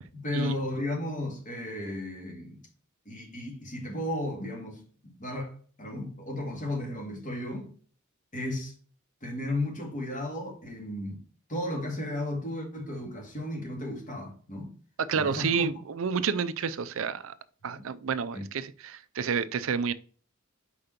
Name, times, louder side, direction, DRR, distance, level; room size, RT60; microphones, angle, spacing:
voice 1, 0.1-2.6 3.1-7.7 8.3-8.7 9.2-11.2 11.5-14.7 15.2-15.7 17.6-17.8 18.3-18.5, left 1 dB, 35° left, 2.1 m, -34 dB
voice 2, 15.0-17.3 17.6-19.9, right 6 dB, 70° right, 0.5 m, -30 dB
5.2 x 4.8 x 5.7 m
head